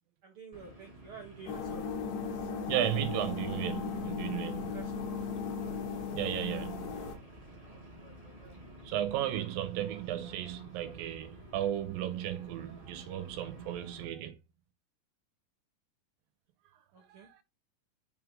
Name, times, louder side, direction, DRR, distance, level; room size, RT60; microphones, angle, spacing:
voice 1, 0.2-1.8 4.7-5.1 16.9-17.3, right 4 dB, 70° right, 1.2 m, -49 dB
sound 1, 0.5-14.0, right 1 dB, 30° right, 0.6 m, -52 dB
sound 2, 1.5-7.2, left 5 dB, 75° left, 2.4 m, -37 dB
voice 2, 2.7-4.8 6.1-7.2 8.9-14.4 17.1-17.3, right 12 dB, 90° right, 2.6 m, -35 dB
5.6 x 4.7 x 3.7 m
omnidirectional pair, 4.0 m